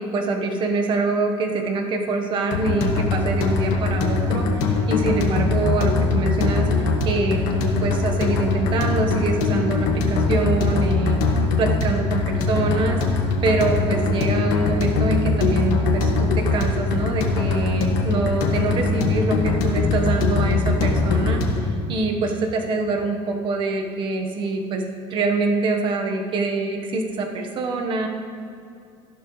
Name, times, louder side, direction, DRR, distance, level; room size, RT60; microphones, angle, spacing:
voice 1, 0.0-11.2 11.6-13.0 13.4-21.4 21.9-24.8 25.1-28.1, right 3 dB, 40° right, 3 dB, 1.1 m, -25 dB
sound 1, 2.5-21.7, left 3 dB, 85° left, 1.7 m, -22 dB
14.5 x 12.0 x 3.1 m, 2.6 s
cardioid pair, 160°, 13 cm